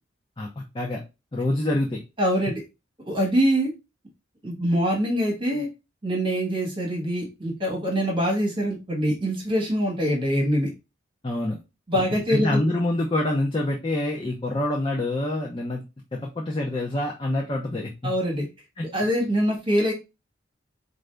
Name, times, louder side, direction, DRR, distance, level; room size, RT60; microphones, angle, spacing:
voice 1, 0.4-1.0 1.3-2.0 11.2-11.6 12.3-15.8 16.1-17.9 18.8-18.9, left 1 dB, 25° left, -1 dB, 0.6 m, -26 dB
voice 2, 2.2-2.6 3.0-3.7 4.4-5.7 6.0-10.7 11.9-12.6 18.0-18.5 18.9-19.9, equal, 25° right, -1 dB, 1.4 m, -24 dB
4.7 x 2.6 x 3.3 m, 0.26 s
head